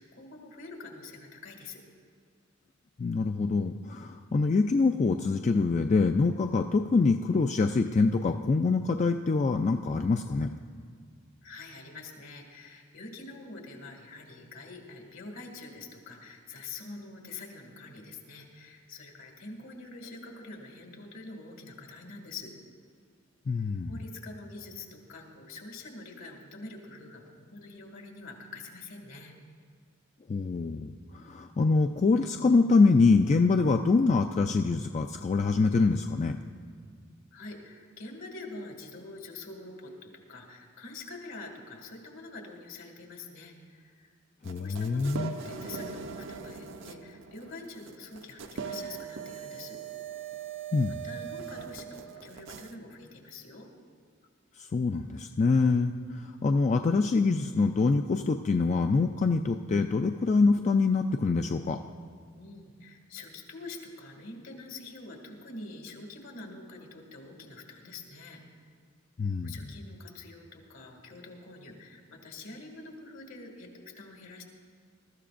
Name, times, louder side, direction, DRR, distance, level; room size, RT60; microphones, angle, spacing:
voice 1, 0.0-1.8 11.4-22.5 23.9-29.3 37.3-44.1 44.6-49.8 51.0-53.7 62.4-68.4 69.4-74.4, left 3 dB, 70° left, 1 dB, 2.2 m, -45 dB
voice 2, 3.0-10.5 23.5-24.0 30.3-36.4 44.4-45.3 50.7-51.0 54.6-61.8 69.2-69.5, left 4 dB, 35° left, 5 dB, 0.3 m, -25 dB
sound 1, 44.4-52.7, right 6 dB, 65° right, 0.6 m, -40 dB
21.5 x 13.5 x 2.5 m, 2.1 s
head